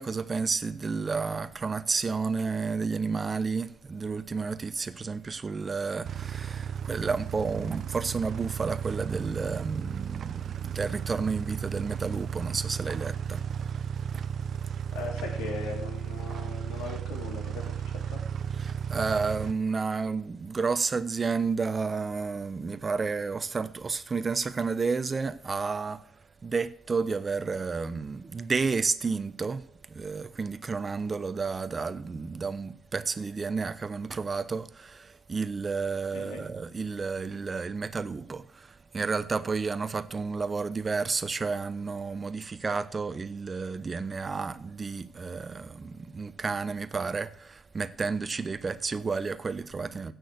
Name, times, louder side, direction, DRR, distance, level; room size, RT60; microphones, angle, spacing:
voice 1, 0.0-13.4 14.1-14.2 18.6-26.0 26.4-29.6 29.9-50.1, right 4 dB, 35° right, 1.0 m, -31 dB
sound 1, 6.0-19.5, right 8 dB, 60° right, 0.7 m, -34 dB
voice 2, 14.9-18.2 36.1-36.4, left 4 dB, 85° left, 3.3 m, -39 dB
16.0 x 6.4 x 8.0 m
hypercardioid pair, 55°, 0 cm